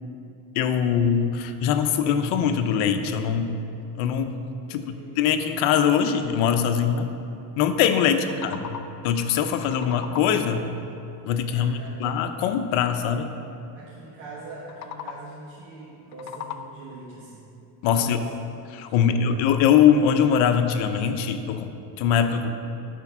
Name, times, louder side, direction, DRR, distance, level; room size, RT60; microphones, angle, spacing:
voice 1, 0.6-3.5 4.0-4.4 4.7-7.0 7.6-8.7 9.0-10.7 11.2-13.3 17.8-18.2 18.7-22.5, left 8 dB, 80° left, 8 dB, 0.8 m, -22 dB
voice 2, 4.7-5.3 8.1-8.3 11.5-12.1 13.7-17.5 17.8-18.3 18.8-19.4, right 2 dB, 90° right, -7 dB, 1.6 m, -42 dB
sound 1, 8.2-9.1 9.4-10.6 14.6-15.5 15.9-17.0, left 7 dB, 40° left, 0.4 m, -39 dB
10.5 x 4.5 x 6.0 m, 2.8 s
cardioid pair, 120°, 46 cm